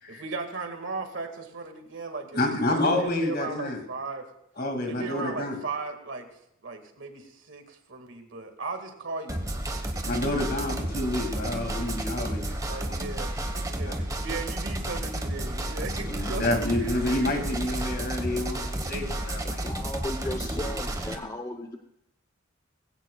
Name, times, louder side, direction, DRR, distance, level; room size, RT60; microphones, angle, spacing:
voice 1, 0.1-4.3 4.8-6.3 6.6-9.4 12.7-16.5 16.8-16.9 17.2-17.4, right 3 dB, 65° right, 6 dB, 1.8 m, -37 dB
voice 2, 2.3-3.8 4.6-5.6 10.0-12.9 13.9-14.0 14.9-15.0 16.1-19.6 20.3-20.7, left 1 dB, 50° left, 4 dB, 2.2 m, -29 dB
sound 1, 9.3-21.2, right 1 dB, 20° right, 1.1 m, -31 dB
voice 3, 19.6-21.8, left 1 dB, 20° left, 5 dB, 0.7 m, -35 dB
19.5 x 16.5 x 2.3 m, 0.84 s
head